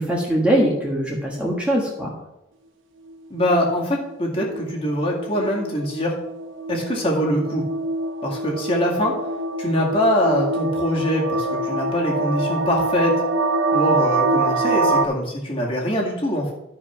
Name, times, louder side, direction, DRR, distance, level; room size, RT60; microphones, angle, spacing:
voice 1, 0.0-2.1, right 1 dB, 5° right, -3 dB, 1.4 m, -21 dB
sound 1, 3.1-15.0, right 2 dB, 85° right, 0.9 m, -25 dB
voice 2, 3.3-6.1 6.7-7.6 8.2-9.1 9.6-13.1 13.7-16.5, equal, 30° left, -2 dB, 2.1 m, -23 dB
12.5 x 4.9 x 5.8 m, 0.88 s
head